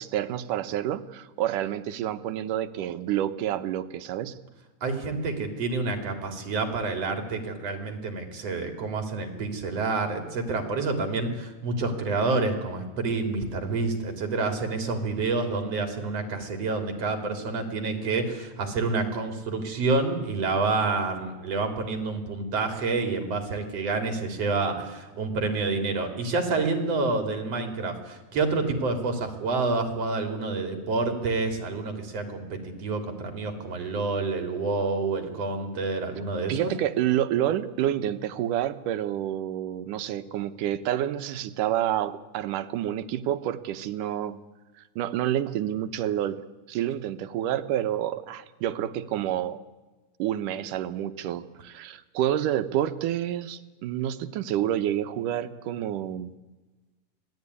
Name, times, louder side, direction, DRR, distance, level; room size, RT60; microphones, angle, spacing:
voice 1, 0.0-4.4 36.5-44.4 45.0-46.4 46.7-49.6 50.2-56.3, right 11 dB, 90° right, 12 dB, 2.6 m, -28 dB
voice 2, 4.8-36.7, right 3 dB, 50° right, 5 dB, 4.2 m, -28 dB
26.0 x 18.5 x 9.8 m, 1.2 s
omnidirectional pair, 3.6 m